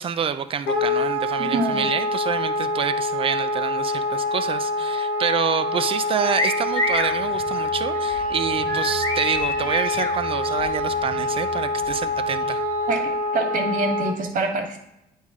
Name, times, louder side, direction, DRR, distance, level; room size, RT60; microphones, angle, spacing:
voice 1, 0.0-12.6, right 7 dB, 35° right, 10 dB, 0.4 m, -27 dB
Wind instrument woodwind instrument, 0.7-14.1, left 1 dB, 85° left, 1.2 m, -25 dB
voice 2, 1.4-1.9 12.9-14.8, right 2 dB, 50° right, 3 dB, 1.4 m, -26 dB
sound 1, 6.3-7.1 8.7-10.1, left 1 dB, 25° left, 1.1 m, -26 dB
sound 2, 6.6-13.2, left 1 dB, 55° left, 1.7 m, -42 dB
9.0 x 3.2 x 3.6 m, 0.86 s
cardioid pair, 110°, 17 cm